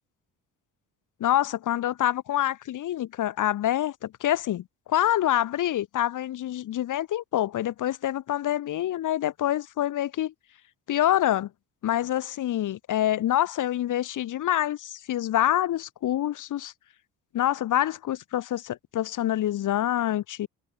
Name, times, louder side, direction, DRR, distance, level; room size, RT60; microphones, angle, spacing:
voice 1, 1.2-10.3 10.9-11.5 11.8-16.7 17.3-20.5, left 12 dB, 50° left, 0.6 m, -26 dB
supercardioid pair, 65°, 40 cm